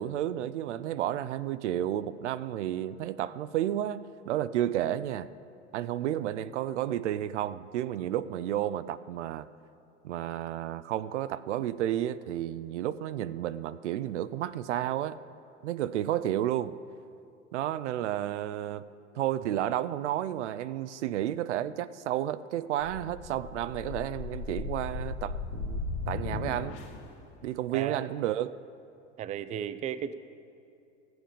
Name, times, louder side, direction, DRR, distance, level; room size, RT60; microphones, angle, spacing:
voice 1, 0.0-5.3 5.7-9.5 10.0-15.2 15.6-16.7 17.5-18.9 19.2-25.8 26.1-26.8 27.4-28.6, right 12 dB, 75° right, 15 dB, 0.5 m, -31 dB
sound 1, 22.8-27.1, left 4 dB, 70° left, 1.3 m, -37 dB
voice 2, 27.7-28.0 29.2-30.1, right 9 dB, 20° right, 13 dB, 0.4 m, -34 dB
14.5 x 7.8 x 5.1 m, 2.6 s
hypercardioid pair, 80°, 35 cm